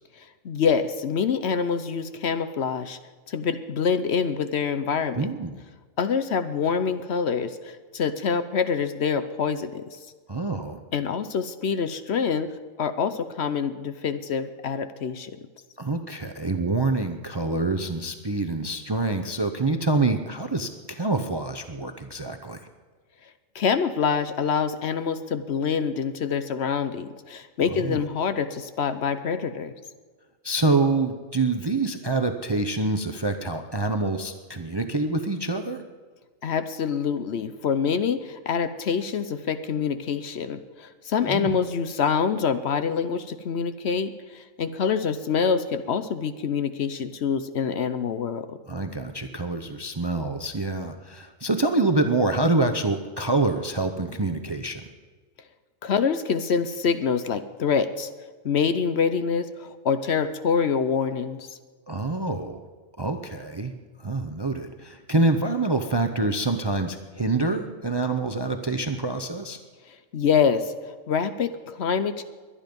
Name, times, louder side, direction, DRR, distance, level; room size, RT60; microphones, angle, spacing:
voice 1, 0.4-3.0 3.3-5.3 6.0-9.9 10.9-12.5 12.8-15.3 23.5-29.7 36.4-48.6 55.8-58.1 58.4-61.5 69.9-70.7 71.1-72.2, left 6 dB, 60° left, 11 dB, 0.9 m, -26 dB
voice 2, 5.2-5.5 10.3-10.8 15.8-22.6 27.8-28.0 30.4-35.8 41.3-41.6 48.7-54.9 61.9-62.6 63.0-69.6, right 2 dB, 25° right, 7 dB, 0.5 m, -26 dB
22.5 x 10.0 x 5.3 m, 1.4 s
omnidirectional pair, 1.4 m